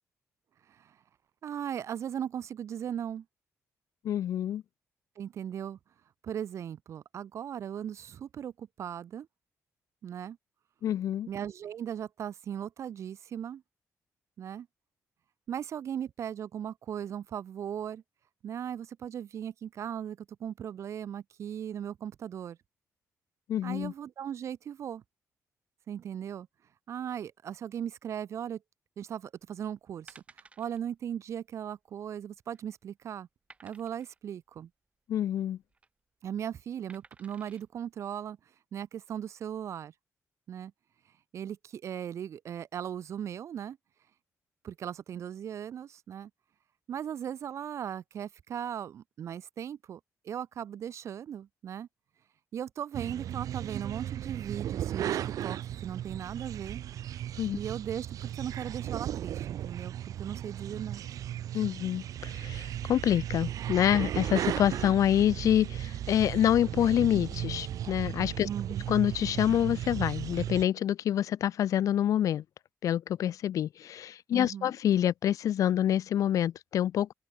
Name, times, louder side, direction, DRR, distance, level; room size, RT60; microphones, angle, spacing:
voice 1, 1.4-3.2 5.2-5.8 6.2-9.3 10.0-10.4 11.3-13.6 14.4-14.7 15.5-18.0 18.4-22.6 23.6-25.0 25.9-26.5 26.9-28.6 29.0-30.2 30.6-33.3 33.6-34.7 36.2-38.4 38.7-39.9 40.5-40.7 41.3-43.8 44.6-46.3 46.9-50.0 50.2-51.9 52.5-56.8 57.5-61.0 68.4-68.9 74.3-74.7, right 9 dB, 55° right, 1.2 m, -38 dB
voice 2, 4.0-4.6 10.8-11.3 23.5-23.9 35.1-35.6 57.4-57.6 61.5-68.5 68.9-72.4 72.8-77.1, left 11 dB, 70° left, 1.3 m, -27 dB
sound 1, 30.1-30.8 31.1-31.3 31.6-31.7 32.2-32.7 33.5-34.2 35.5-35.9 36.9-37.6 38.2-38.3, right 4 dB, 20° right, 7.2 m, -56 dB
sound 2, 52.9-70.6, right 11 dB, 75° right, 1.6 m, -36 dB
wide cardioid pair, 170°, 6 cm